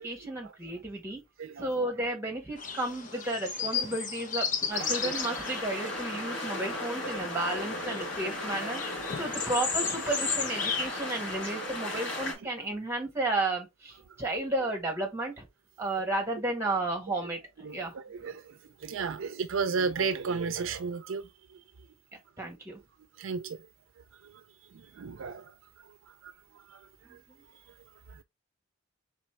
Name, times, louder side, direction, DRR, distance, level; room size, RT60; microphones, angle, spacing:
voice 1, 0.0-1.2 1.6-8.8 9.2-15.4 15.8-17.9 22.4-22.8, right 2 dB, 15° right, 1.5 m, -33 dB
voice 2, 1.4-1.7 3.7-3.9 5.0-5.1 17.6-21.2 23.2-23.6 24.9-25.5 26.2-26.3 26.7-26.8 28.1-28.2, right 5 dB, 70° right, 0.4 m, -33 dB
sound 1, 2.6-10.9, left 6 dB, 40° left, 0.8 m, -35 dB
sound 2, 4.7-12.3, left 1 dB, 55° left, 2.4 m, -36 dB
4.1 x 3.7 x 3.3 m
head